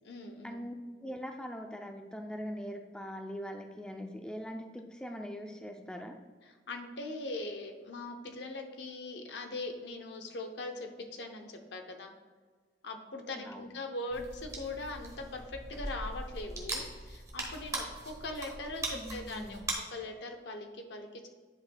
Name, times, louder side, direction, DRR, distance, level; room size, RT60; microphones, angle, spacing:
voice 1, 0.0-0.6 6.7-12.1 12.8-19.6 19.9-21.3, left 2 dB, 80° left, 4 dB, 0.7 m, -41 dB
voice 2, 1.0-6.2 13.3-13.7 18.9-19.6, equal, 5° left, 3 dB, 0.4 m, -42 dB
sound 1, 14.1-19.7, right 2 dB, 20° right, 1.1 m, -40 dB
10.5 x 5.2 x 2.2 m, 1.5 s
head